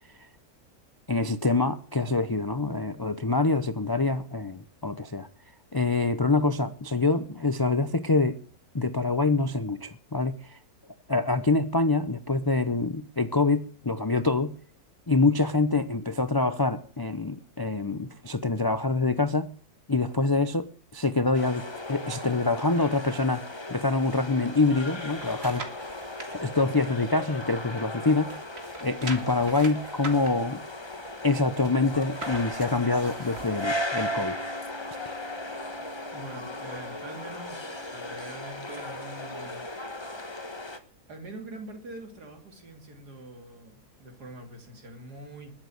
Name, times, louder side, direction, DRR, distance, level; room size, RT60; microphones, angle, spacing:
voice 1, 1.1-5.3 5.7-8.4 8.7-10.6 11.1-14.6 15.1-19.6 19.9-23.4 23.7-25.7 26.3-28.4 28.8-30.6 31.2-34.4, left 3 dB, 35° left, 0.3 m, -25 dB
sound 1, 21.3-40.8, left 1 dB, 20° left, 1.2 m, -37 dB
sound 2, 25.0-26.3 26.8-27.9 28.2-33.8 34.2-34.3, right 3 dB, 40° right, 2.3 m, -42 dB
Bowed string instrument, 34.0-39.5, equal, 20° right, 3.7 m, -50 dB
voice 2, 36.1-39.7 41.1-45.5, right 2 dB, 90° right, 3.4 m, -44 dB
20.5 x 7.8 x 6.4 m
omnidirectional pair, 1.7 m